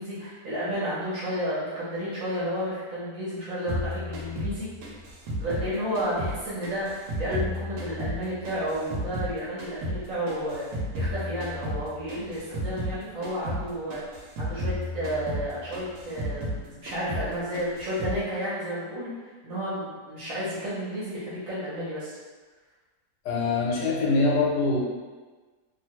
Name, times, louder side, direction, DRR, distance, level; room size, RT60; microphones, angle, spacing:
voice 1, 0.0-4.7 5.4-14.0 14.4-22.2, equal, 55° right, -9 dB, 1.1 m, -32 dB
sound 1, 3.7-6.4 6.6-9.3 9.6-13.0 13.2-13.6 13.9-16.6 16.9-17.3 17.5-18.2, equal, 85° right, 1.3 m, -32 dB
voice 2, 23.2-24.8, left 3 dB, 75° left, -4 dB, 1.3 m, -24 dB
3.0 x 2.3 x 2.9 m, 1.3 s
omnidirectional pair, 2.0 m